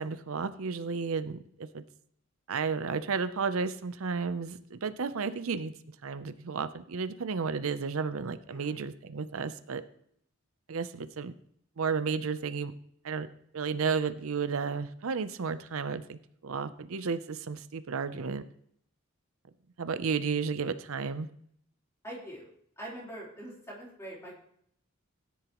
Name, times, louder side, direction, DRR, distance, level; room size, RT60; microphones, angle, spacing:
voice 1, 0.0-1.8 2.5-9.8 10.7-11.3 11.8-12.7 13.0-13.3 13.5-18.4 19.8-21.3, right 5 dB, 75° right, 12 dB, 0.6 m, -33 dB
voice 2, 22.0-22.5 22.8-24.4, right 1 dB, 15° left, -5 dB, 3.8 m, -43 dB
16.5 x 10.0 x 3.0 m, 0.67 s
head